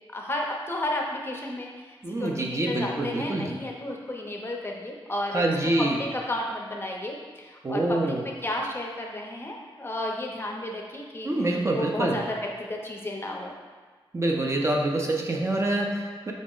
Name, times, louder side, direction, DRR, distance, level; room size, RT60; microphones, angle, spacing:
voice 1, 0.1-5.5 5.8-13.5, left 1 dB, 25° left, 0 dB, 0.5 m, -33 dB
voice 2, 2.0-3.5 5.3-6.0 7.6-8.2 11.2-12.2 14.1-16.3, right 2 dB, 30° right, 0 dB, 0.4 m, -26 dB
5.0 x 2.0 x 3.7 m, 1.5 s
wide cardioid pair, 95°, 9 cm